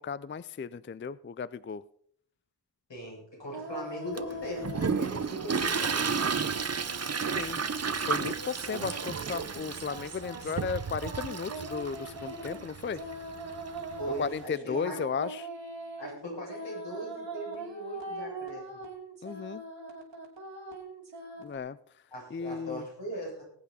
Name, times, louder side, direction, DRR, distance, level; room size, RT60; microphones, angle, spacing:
voice 1, 0.0-1.8 7.3-7.6 8.0-13.0 14.2-15.5 19.2-19.6 21.4-21.8 22.3-22.8, left 6 dB, 30° left, 17 dB, 0.4 m, -35 dB
voice 2, 2.9-6.4 14.0-15.0 16.0-18.8 21.4-21.5 22.1-23.4, right 1 dB, 80° left, -4 dB, 7.4 m, -39 dB
sound 1, 3.5-5.6 5.8-21.6, right 2 dB, 90° right, 3.1 m, -42 dB
Toilet flush, 4.2-14.4, right 5 dB, 35° right, 0.6 m, -33 dB
20.0 x 8.5 x 4.2 m, 0.64 s
wide cardioid pair, 60°, 43 cm